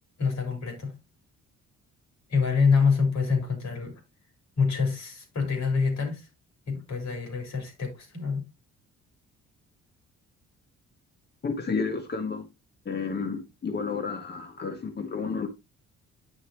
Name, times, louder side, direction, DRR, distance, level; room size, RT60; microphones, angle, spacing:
voice 1, 0.2-0.9 2.3-4.0 4.6-6.3 6.7-8.4, left 5 dB, 65° left, 4.7 m, -26 dB
voice 2, 11.4-12.5 12.8-15.5, left 5 dB, 35° left, 1.0 m, -31 dB
9.3 x 6.4 x 3.0 m
cardioid pair, 90°, 30 cm